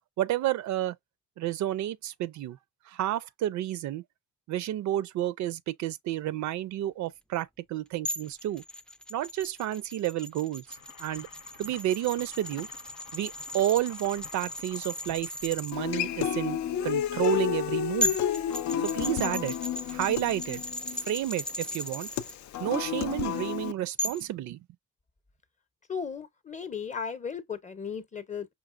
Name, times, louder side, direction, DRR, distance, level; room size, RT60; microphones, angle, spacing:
voice 1, 0.2-0.9 1.4-2.6 2.9-4.0 4.5-8.6 9.1-10.6 11.0-11.3 11.6-12.7 13.1-18.2 18.8-20.6 21.1-22.1 22.6-24.6, right 13 dB, 70° right, 0.4 m, -30 dB
sound 1, 8.0-15.7 17.6-17.7 18.0-22.3 24.0-24.3, left 1 dB, 5° left, 0.3 m, -36 dB
sound 2, 10.7-15.7, left 7 dB, 85° left, 0.8 m, -51 dB
Human voice / Acoustic guitar, 15.7-23.7, left 10 dB, 70° left, 0.4 m, -31 dB
voice 2, 25.9-28.5, left 6 dB, 25° left, 0.7 m, -36 dB
5.2 x 2.5 x 2.4 m
cardioid pair, 90°, 30 cm